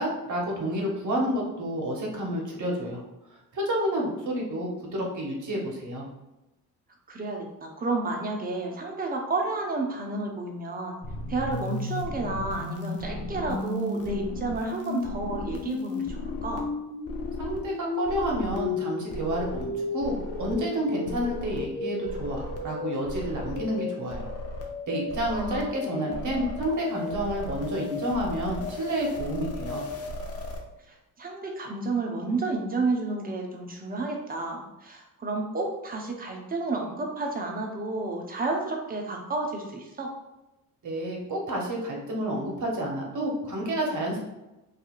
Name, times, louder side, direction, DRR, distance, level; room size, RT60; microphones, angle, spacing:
voice 1, 0.0-3.0 3.5-6.0 17.4-24.3 24.9-29.8 40.8-44.2, right 1 dB, 45° right, -1 dB, 1.0 m, -30 dB
voice 2, 7.1-11.0 11.3-16.7 25.3-26.3 30.9-40.1, right 3 dB, 20° right, 1 dB, 0.7 m, -31 dB
sound 1, 11.0-30.6, left 2 dB, 35° left, 0.7 m, -34 dB
2.7 x 2.4 x 2.4 m, 0.98 s
hypercardioid pair, 50°, 43 cm